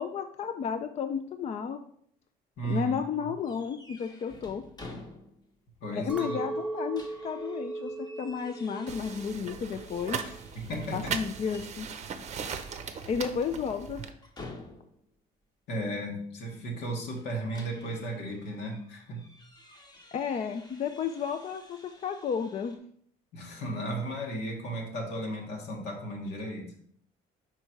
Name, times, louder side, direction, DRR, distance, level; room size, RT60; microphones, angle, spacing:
voice 1, 0.0-1.8 2.6-4.7 5.9-10.4 10.9-11.9 13.1-14.1 20.1-22.8, left 6 dB, 40° left, 8 dB, 0.4 m, -32 dB
voice 2, 2.6-2.9 3.2-3.3 5.8-6.4 10.6-11.1 15.7-19.3 23.3-26.7, right 1 dB, 80° left, 0 dB, 1.7 m, -35 dB
sound 1, 3.4-5.6 5.9-6.0 6.5-11.2 11.5-11.8 12.2-15.1 17.2-22.8, left 2 dB, 25° left, 1.1 m, -51 dB
Chink clink, 6.1-10.5 10.8-11.4, right 2 dB, 5° right, 0.7 m, -39 dB
sound 2, 8.9-14.1, right 7 dB, 40° right, 0.6 m, -38 dB
5.1 x 4.5 x 4.5 m, 0.64 s
cardioid pair, 110°, 17 cm